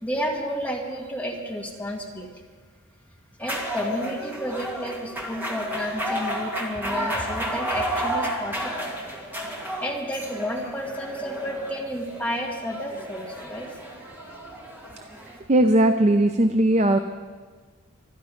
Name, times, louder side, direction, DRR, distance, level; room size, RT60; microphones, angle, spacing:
voice 1, 0.0-2.3 3.4-8.9 9.8-13.8, equal, 5° left, 0 dB, 1.7 m, -31 dB
sound 1, 3.4-15.4, right 1 dB, 10° right, 2.0 m, -32 dB
voice 2, 15.5-17.0, right 1 dB, 30° right, 8 dB, 0.5 m, -18 dB
24.5 x 11.0 x 5.2 m, 1.5 s
head